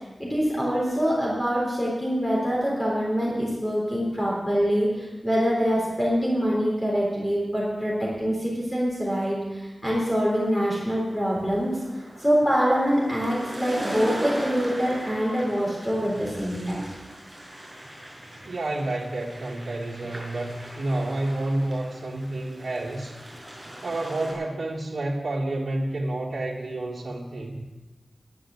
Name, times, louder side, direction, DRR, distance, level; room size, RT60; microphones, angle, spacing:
voice 1, 0.2-11.7 12.2-16.8, equal, 10° left, -5 dB, 3.9 m, -25 dB
sound 1, 10.1-24.3, right 1 dB, 35° right, 6.1 m, -39 dB
voice 2, 18.5-23.2 23.8-27.6, right 2 dB, 75° right, -4 dB, 1.6 m, -29 dB
11.5 x 10.5 x 7.1 m, 1.2 s
wide cardioid pair, 95°, 0 cm